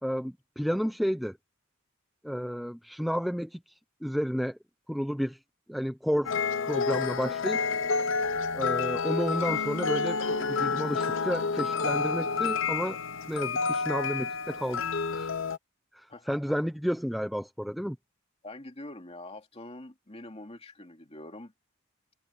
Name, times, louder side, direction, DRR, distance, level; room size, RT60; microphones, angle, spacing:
voice 1, 0.0-1.4 2.2-4.6 4.9-5.4 5.7-6.3 6.6-7.6 8.5-13.0 13.3-15.3 15.9-18.0, equal, ahead, 0.6 m, -31 dB
sound 1, 6.3-15.6, left 4 dB, 60° left, 0.8 m, -29 dB
voice 2, 18.4-21.5, left 2 dB, 30° left, 2.5 m, -44 dB
head